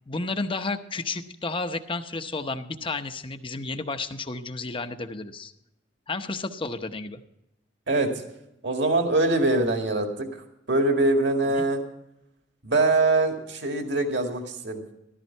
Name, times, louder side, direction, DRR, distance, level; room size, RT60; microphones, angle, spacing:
voice 1, 0.1-5.5 6.1-7.2 11.5-11.6, left 3 dB, 30° left, 9 dB, 0.9 m, -32 dB
voice 2, 8.6-10.3 10.7-11.8 12.6-14.8, right 2 dB, 70° right, 4 dB, 2.0 m, -23 dB
14.0 x 13.5 x 4.5 m, 0.85 s
head